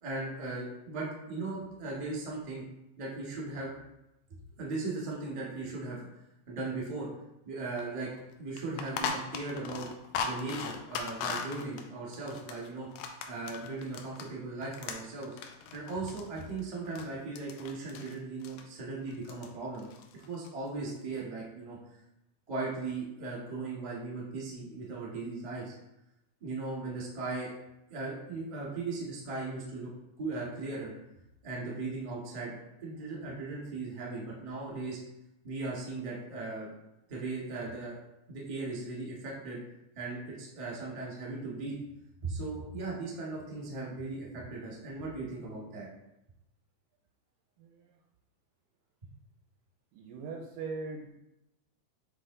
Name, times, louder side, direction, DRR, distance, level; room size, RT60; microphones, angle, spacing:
voice 1, 0.0-2.6 3.0-3.7 4.6-6.0 6.5-7.1 7.4-8.1 8.4-9.9 10.2-12.9 13.3-15.4 15.7-19.9 20.3-21.8 22.5-25.7 26.4-27.5 27.9-29.9 30.2-30.9 31.4-35.0 35.4-36.7 37.1-38.0 38.3-39.6 39.9-41.7 42.2-45.9, right 3 dB, 25° right, -6 dB, 0.9 m, -38 dB
sound 1, 7.8-7.9 8.1-8.2 8.6-14.3 14.6-17.1 17.4-18.1 18.4-18.6 19.1-19.5 19.7-20.5, left 5 dB, 85° left, 1.8 m, -38 dB
voice 2, 49.9-51.1, right 4 dB, 80° right, 2 dB, 2.0 m, -39 dB
7.8 x 3.1 x 3.9 m, 0.87 s
omnidirectional pair, 4.1 m